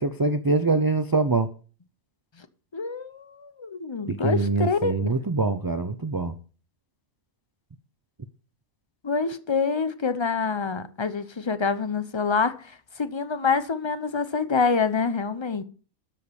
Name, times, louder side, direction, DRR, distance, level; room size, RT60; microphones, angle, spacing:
voice 1, 0.0-1.5 4.1-6.3, right 3 dB, 35° right, 0.3 m, -24 dB
voice 2, 2.7-5.1 9.0-15.6, left 5 dB, 30° left, 0.6 m, -26 dB
13.0 x 5.1 x 6.9 m
omnidirectional pair, 1.4 m